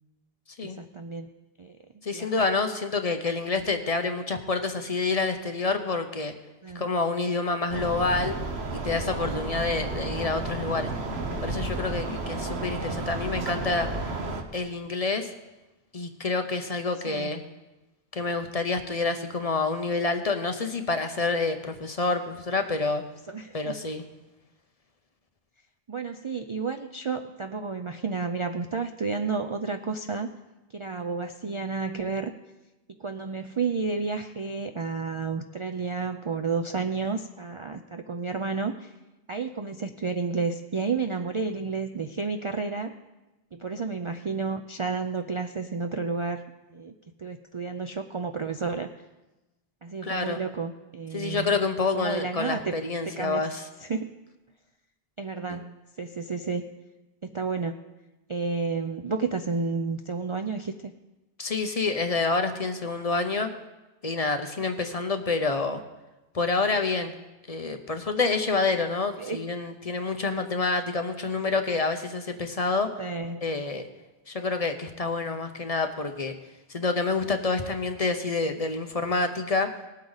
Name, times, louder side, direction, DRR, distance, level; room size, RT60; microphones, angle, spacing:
voice 1, 0.6-1.3 1.6-1.8 2.1-2.5 6.6-6.9 17.1-17.4 23.3-23.7 25.9-30.3 30.7-32.3 33.0-38.9 39.3-42.9 43.5-46.4 46.7-46.9 47.2-48.9 49.8-51.5 51.9-52.8 53.1-53.5 53.8-54.1 55.2-56.7 57.2-57.7 58.3-60.9 69.2-69.4 73.0-73.5, right 4 dB, 45° right, 6 dB, 0.4 m, -31 dB
voice 2, 2.0-6.3 6.7-8.3 8.7-10.9 11.4-13.9 14.5-15.3 15.9-17.4 18.1-23.0 23.5-24.0 50.0-50.4 51.1-53.6 55.5-55.6 61.4-63.5 64.0-65.8 66.3-67.1 67.5-72.9 73.4-73.8 74.3-76.3 76.7-79.7, left 3 dB, 40° left, 7 dB, 0.8 m, -28 dB
sound 1, 7.7-14.4, right 2 dB, 85° right, 1.4 m, -32 dB
19.0 x 8.5 x 4.0 m, 1.1 s
omnidirectional pair, 1.1 m